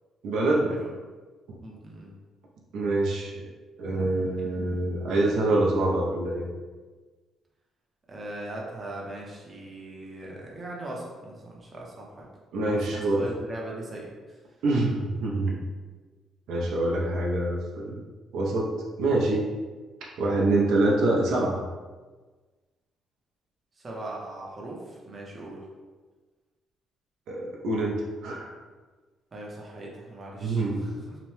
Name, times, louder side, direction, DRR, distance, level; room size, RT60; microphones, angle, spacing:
voice 1, 0.2-0.7 2.7-3.4 3.8-6.4 12.5-13.3 14.6-15.6 16.5-18.0 18.3-18.7 19.0-19.4 20.2-21.6 27.3-28.5 30.4-30.9, right 2 dB, 80° right, -2 dB, 0.5 m, -25 dB
voice 2, 1.6-2.1 8.1-12.3 12.6-14.4 23.7-25.6 29.3-31.2, right 1 dB, 30° right, -3 dB, 0.6 m, -40 dB
2.8 x 2.1 x 3.1 m, 1.3 s
cardioid pair, 130°, 0 cm